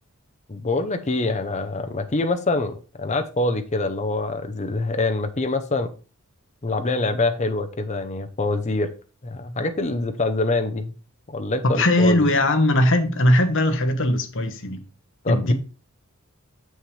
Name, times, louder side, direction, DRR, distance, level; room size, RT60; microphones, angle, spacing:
voice 1, 0.5-5.9 6.6-8.9 9.2-10.9 11.3-12.3 15.2-15.5, left 2 dB, 30° left, 0.7 m, -25 dB
voice 2, 11.6-14.8 15.3-15.5, left 1 dB, 60° left, 1.0 m, -19 dB
6.9 x 6.4 x 3.3 m
head